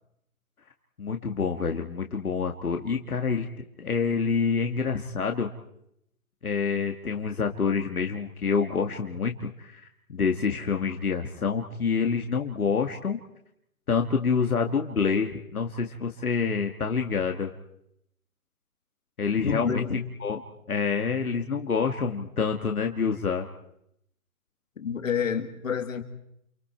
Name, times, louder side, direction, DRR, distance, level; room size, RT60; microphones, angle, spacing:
voice 1, 1.0-5.5 6.4-13.2 13.9-17.5 19.2-20.4 20.7-23.5, left 5 dB, 85° left, 4 dB, 2.0 m, -27 dB
voice 2, 19.4-19.9 24.8-26.0, left 6 dB, 65° left, 7 dB, 2.6 m, -28 dB
29.5 x 28.5 x 4.5 m, 0.77 s
hypercardioid pair, 155°, 43 cm